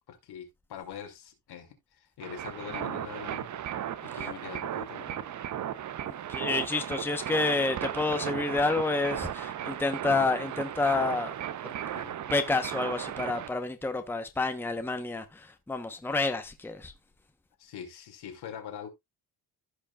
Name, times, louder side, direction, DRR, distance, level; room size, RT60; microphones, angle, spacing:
voice 1, 0.1-3.5 4.0-5.2 11.9-12.2 17.6-18.9, left 8 dB, 80° left, 2.4 m, -43 dB
sound 1, 2.2-13.5, right 10 dB, 50° right, 0.7 m, -36 dB
voice 2, 6.3-11.3 11.6-11.8 12.3-16.9, left 3 dB, 5° left, 0.8 m, -29 dB
15.0 x 5.2 x 2.3 m
cardioid pair, 135°, 39 cm